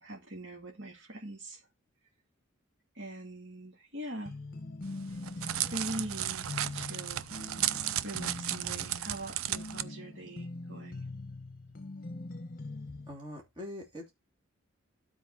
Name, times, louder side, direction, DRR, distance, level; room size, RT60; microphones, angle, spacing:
voice 1, 0.0-1.6 3.0-4.3 5.7-7.3 8.0-11.0, right 1 dB, 60° right, 2.1 m, -42 dB
sound 1, 4.3-13.1, left 2 dB, 45° left, 1.0 m, -43 dB
Crackle, 4.8-9.8, right 12 dB, 80° right, 0.4 m, -34 dB
voice 2, 13.1-14.1, left 1 dB, 20° right, 3.0 m, -43 dB
12.5 x 4.4 x 4.3 m
head